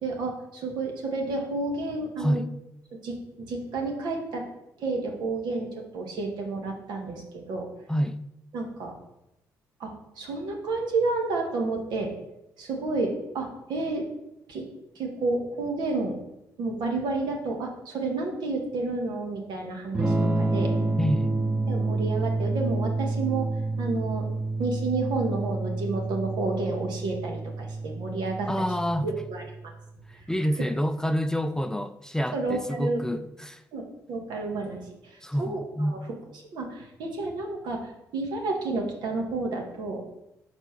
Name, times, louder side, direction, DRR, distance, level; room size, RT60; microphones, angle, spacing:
voice 1, 0.0-2.4 2.9-4.5 4.8-7.7 8.5-8.9 9.8-12.1 12.6-14.1 14.5-14.7 14.9-16.2 16.6-20.7 21.7-24.3 24.6-28.5 29.0-29.4 30.6-30.7 32.3-33.0 33.7-36.0 36.5-40.1, right 3 dB, 75° right, 1.6 m, -30 dB
voice 2, 7.9-8.2 21.0-21.3 28.5-29.1 30.1-33.6 35.2-36.0, equal, 10° left, 0.5 m, -28 dB
Electric guitar / Strum, 19.9-29.7, right 2 dB, 15° right, 0.9 m, -29 dB
5.1 x 4.5 x 6.0 m
supercardioid pair, 60°, 8 cm